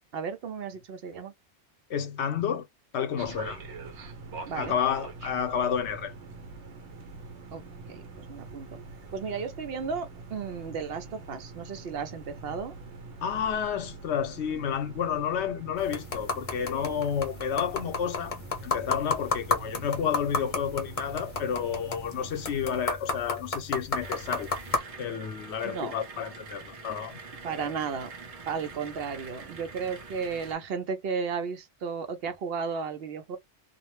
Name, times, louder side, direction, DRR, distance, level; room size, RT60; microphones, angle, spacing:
voice 1, 0.1-1.3 4.5-4.8 7.5-7.6 7.9-8.8 9.1-12.7 25.6-25.9 27.4-28.1 28.5-33.4, right 5 dB, 65° right, 0.8 m, -34 dB
voice 2, 1.9-2.7 2.9-3.6 4.5-6.1 13.2-18.4 18.6-24.5 25.0-27.2 27.5-27.7, left 8 dB, 80° left, 0.9 m, -30 dB
sound 1, 3.2-22.8, right 3 dB, 85° right, 1.0 m, -44 dB
sound 2, 15.8-24.8, left 3 dB, 40° left, 0.6 m, -33 dB
sound 3, 24.0-30.6, right 4 dB, 45° right, 0.6 m, -45 dB
2.4 x 2.1 x 3.0 m
omnidirectional pair, 1.1 m